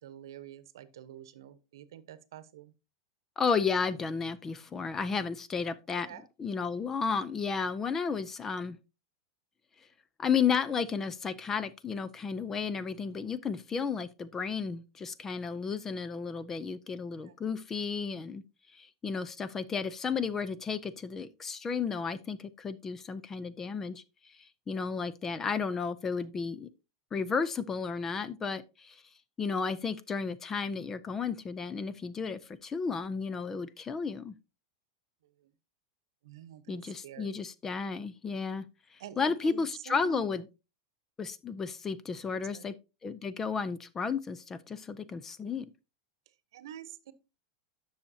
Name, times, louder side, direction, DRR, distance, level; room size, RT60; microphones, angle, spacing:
voice 1, 0.0-2.7 5.9-6.3 17.2-17.4 25.4-25.6 35.2-35.5 36.2-37.4 39.0-40.3 42.3-42.7 46.3-47.1, right 11 dB, 85° right, 0.9 m, -48 dB
voice 2, 3.4-6.1 6.4-8.8 10.2-18.4 18.7-24.0 24.4-26.7 27.1-29.0 29.4-34.3 36.7-38.6 39.2-40.4 41.2-42.7 43.0-45.7, left 5 dB, 15° left, 0.4 m, -33 dB
9.9 x 6.4 x 2.7 m
supercardioid pair, 155°, 2 cm